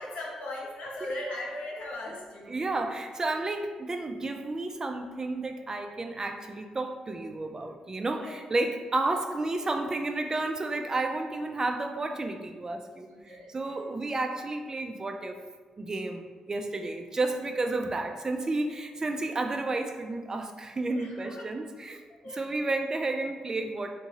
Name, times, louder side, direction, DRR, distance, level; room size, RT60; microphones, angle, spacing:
voice 1, 0.0-2.7 8.0-8.5 13.1-13.8 20.9-21.4 22.2-22.5, left 1 dB, 85° left, -3 dB, 0.8 m, -39 dB
voice 2, 2.5-15.4 15.8-22.0 22.3-23.9, right 2 dB, 30° right, 5 dB, 0.3 m, -31 dB
3.6 x 2.8 x 2.7 m, 1.4 s
cardioid pair, 85°, 2 cm